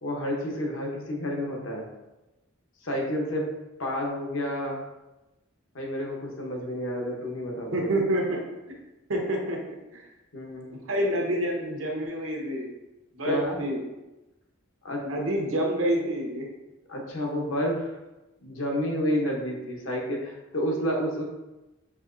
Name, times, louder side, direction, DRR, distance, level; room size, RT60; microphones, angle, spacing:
voice 1, 0.0-1.9 2.8-3.5 3.8-4.8 5.7-7.9 10.3-10.7 13.3-13.6 14.8-15.1 16.9-18.0 18.4-21.2, equal, 75° left, 0 dB, 0.9 m, -30 dB
voice 2, 7.7-8.4 9.1-10.1 10.7-12.7 13.1-13.8 15.0-16.5, right 1 dB, 90° right, 0 dB, 0.9 m, -28 dB
5.9 x 2.8 x 2.6 m, 1.0 s
head